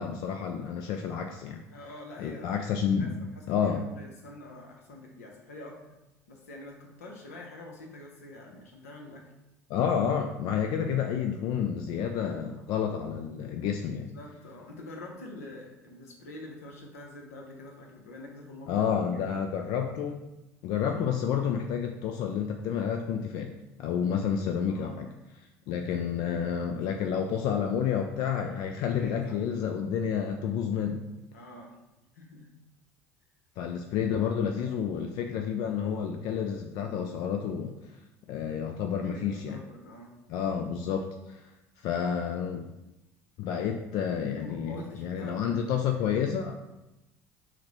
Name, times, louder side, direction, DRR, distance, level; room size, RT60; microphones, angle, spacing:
voice 1, 0.0-1.6 2.2-3.2 3.5-3.8 9.7-14.1 18.7-20.2 20.6-23.5 23.8-25.1 25.7-31.0 33.6-37.7 38.3-39.6 40.3-41.4 41.8-42.7 43.4-46.5, left 7 dB, 60° left, 4 dB, 0.4 m, -30 dB
voice 2, 1.7-5.9 6.3-9.3 14.0-19.4 24.7-25.1 25.7-27.2 29.0-29.4 31.3-31.8 32.1-32.5 39.0-40.6 44.4-46.1, left 1 dB, 85° left, 0 dB, 0.7 m, -46 dB
5.7 x 2.1 x 2.9 m, 0.96 s
hypercardioid pair, 65°, 8 cm